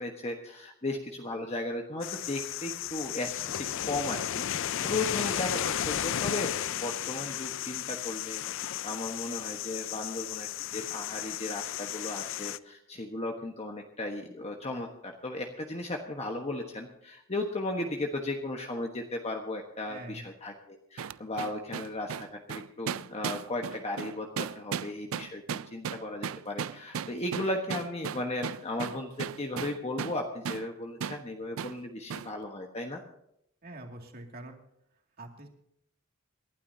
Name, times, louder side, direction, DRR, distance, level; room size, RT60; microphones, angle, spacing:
voice 1, 0.0-25.4 25.7-33.0, left 2 dB, 30° left, 2 dB, 1.3 m, -36 dB
sound 1, 2.0-12.6, left 11 dB, 65° left, 0.5 m, -34 dB
voice 2, 4.8-5.1 19.9-20.2 33.6-34.6 35.2-35.5, right 2 dB, 50° right, 3 dB, 2.4 m, -44 dB
sound 2, 21.0-30.2 30.5-30.7 31.0-31.2 31.6-31.8 32.1-32.3, right 7 dB, 75° right, 0.4 m, -36 dB
27.5 x 12.0 x 2.8 m, 0.77 s
head